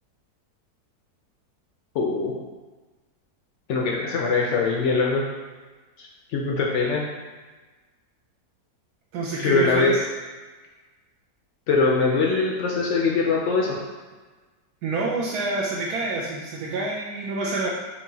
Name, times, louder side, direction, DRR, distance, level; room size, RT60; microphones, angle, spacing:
voice 1, 1.9-2.4 3.7-5.3 6.0-6.1 6.3-7.1 9.4-9.9 11.7-13.8, left 4 dB, 70° left, -1 dB, 0.7 m, -22 dB
voice 2, 9.1-10.0 14.8-17.7, right 3 dB, 75° right, -4 dB, 1.1 m, -27 dB
4.7 x 2.8 x 2.7 m, 1.3 s
omnidirectional pair, 1.7 m